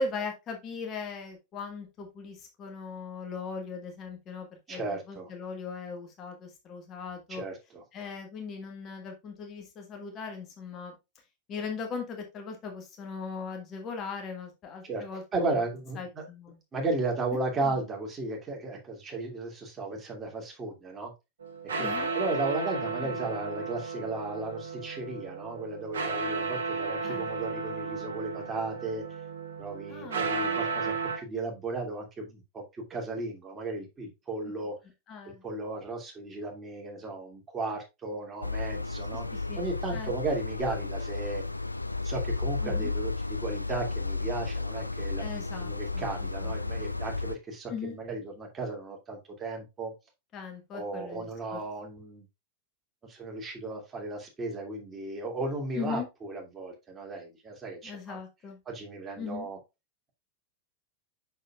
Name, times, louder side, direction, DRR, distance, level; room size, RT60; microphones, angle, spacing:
voice 1, 0.0-7.4 7.9-10.9 11.5-15.6 15.9-16.6 17.6-17.7 21.8-22.1 23.0-23.1 27.0-27.3 29.9-30.6 34.4-34.5 35.1-35.4 39.1-39.6 39.9-40.1 42.6-42.9 45.2-46.5 47.7-48.0 50.3-51.6 55.7-56.1 57.8-58.6 59.2-59.5, left 4 dB, 30° left, 4 dB, 1.6 m, -39 dB
voice 2, 4.7-5.3 7.3-7.8 14.8-15.0 15.3-16.2 16.7-21.1 21.8-29.0 29.6-34.7 35.4-39.2 39.6-41.4 42.0-49.9 50.7-52.2 53.1-58.2 58.7-59.6, right 2 dB, 20° right, 0 dB, 2.6 m, -35 dB
sound 1, 21.4-31.2, right 4 dB, 65° right, 1.2 m, -34 dB
sound 2, 38.4-47.4, left 3 dB, 85° left, 0.3 m, -33 dB
6.5 x 6.5 x 2.4 m, 0.23 s
figure-of-eight pair, 90°, 0 cm